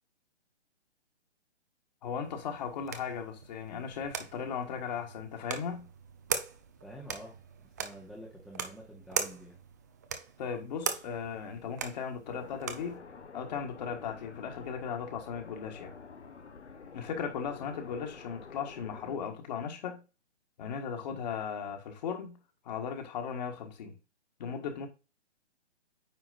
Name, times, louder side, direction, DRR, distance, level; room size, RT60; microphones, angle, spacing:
voice 1, 2.0-5.9 10.4-13.0 13.3-15.9 16.9-20.0 20.6-22.4 22.6-23.9 24.4-24.9, left 7 dB, 40° left, 1.7 m, -37 dB
sound 1, 2.2-13.0, right 6 dB, 15° right, 0.4 m, -40 dB
voice 2, 6.8-9.6, right 1 dB, ahead, 0.8 m, -48 dB
sound 2, 12.3-19.2, left 5 dB, 75° left, 1.3 m, -49 dB
9.1 x 5.0 x 2.5 m
figure-of-eight pair, 140°, 34 cm